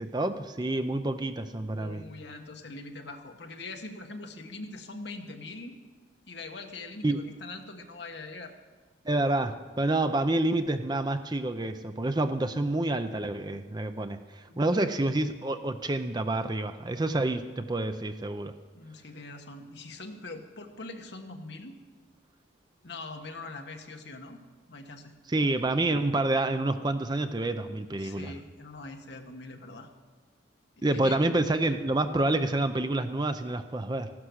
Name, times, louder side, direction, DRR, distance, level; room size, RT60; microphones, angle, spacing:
voice 1, 0.0-2.0 7.0-7.2 9.0-18.5 25.3-28.3 30.8-34.1, right 2 dB, 20° right, 9 dB, 0.5 m, -28 dB
voice 2, 1.8-5.8 6.3-8.5 14.5-14.8 18.7-21.8 22.8-24.4 24.7-25.1 28.0-29.9 30.8-31.2, left 2 dB, 55° left, 4 dB, 1.4 m, -42 dB
15.0 x 12.0 x 6.4 m, 1.4 s
head